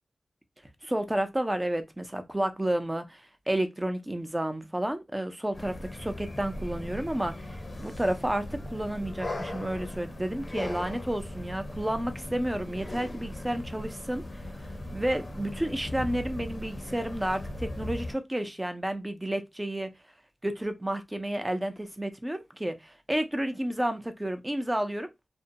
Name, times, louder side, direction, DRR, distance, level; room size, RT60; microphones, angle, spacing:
voice 1, 0.8-19.9 20.4-25.1, right 1 dB, 15° right, 0.6 m, -31 dB
sound 1, 5.5-18.1, left 1 dB, 45° left, 0.7 m, -38 dB
2.6 x 2.1 x 2.6 m
cardioid pair, 45°, 0 cm